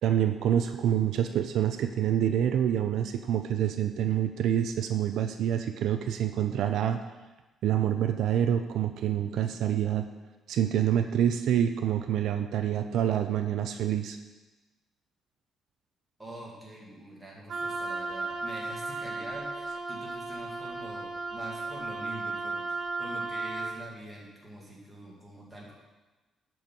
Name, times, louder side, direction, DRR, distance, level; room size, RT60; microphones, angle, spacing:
voice 1, 0.0-7.0 7.6-10.1 10.5-14.2, right 10 dB, 70° right, 7 dB, 0.5 m, -27 dB
voice 2, 16.2-25.7, right 1 dB, 5° right, -4 dB, 2.3 m, -45 dB
Wind instrument woodwind instrument, 17.5-23.8, right 3 dB, 50° right, 1.0 m, -35 dB
11.5 x 4.6 x 5.4 m, 1.2 s
cardioid pair, 150°, 0 cm